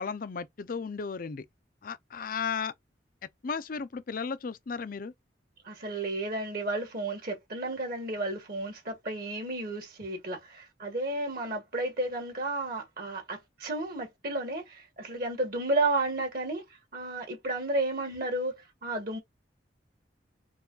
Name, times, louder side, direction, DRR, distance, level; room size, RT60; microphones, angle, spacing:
voice 1, 0.0-1.4 1.8-2.7 3.4-5.1, left 5 dB, 50° left, 0.5 m, -34 dB
voice 2, 5.6-16.6 16.9-19.2, right 2 dB, 55° right, 1.7 m, -32 dB
4.7 x 2.4 x 3.8 m
head